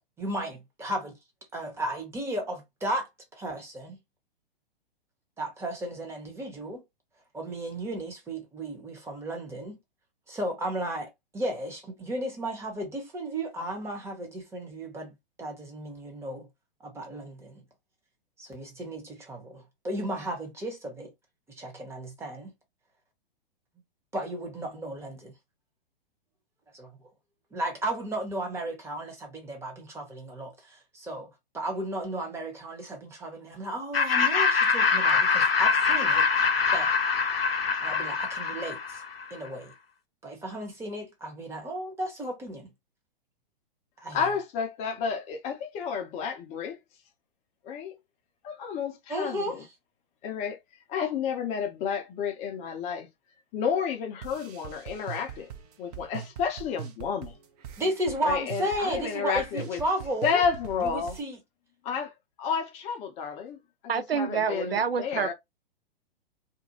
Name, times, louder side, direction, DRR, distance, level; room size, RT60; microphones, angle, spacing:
voice 1, 0.2-1.2 1.5-4.0 5.4-6.8 7.3-9.8 10.3-16.5 16.8-17.6 18.4-21.1 21.5-22.5 24.1-25.3 26.7-27.0 27.5-36.3 36.7-36.9 37.8-39.0 39.3-39.7 40.2-42.7 44.0-44.2 49.1-49.7 57.8-60.4 60.8-61.4, right 1 dB, 10° right, 0.8 m, -34 dB
Laughter, 33.9-39.2, left 5 dB, 85° left, 0.6 m, -24 dB
voice 2, 44.1-46.8 47.6-47.9 48.4-49.6 50.2-50.6 50.9-53.1 53.5-55.5 55.8-57.3 58.2-59.8 60.2-61.2 61.8-62.1 62.4-63.6 64.0-65.3, left 6 dB, 25° left, 0.5 m, -31 dB
sound 1, 54.2-61.2, right 9 dB, 45° right, 0.6 m, -42 dB
voice 3, 63.9-65.3, right 6 dB, 85° right, 0.5 m, -27 dB
2.5 x 2.2 x 2.8 m
figure-of-eight pair, 110°, 29 cm